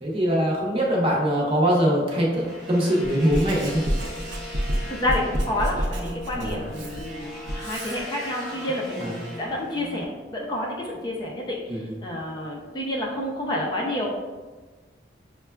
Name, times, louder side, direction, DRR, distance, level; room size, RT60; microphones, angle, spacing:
voice 1, 0.0-3.8 6.3-6.7 9.0-9.2 11.7-11.8, equal, 30° right, -3 dB, 0.7 m, -22 dB
sound 1, 0.9-9.6, left 1 dB, 90° left, 0.5 m, -42 dB
sound 2, 2.3-10.0, equal, ahead, 0.9 m, -40 dB
Writing, 3.3-8.0, equal, 85° right, 0.6 m, -29 dB
voice 2, 4.6-14.1, left 1 dB, 25° left, -3 dB, 0.5 m, -29 dB
5.9 x 2.2 x 2.2 m, 1.3 s
head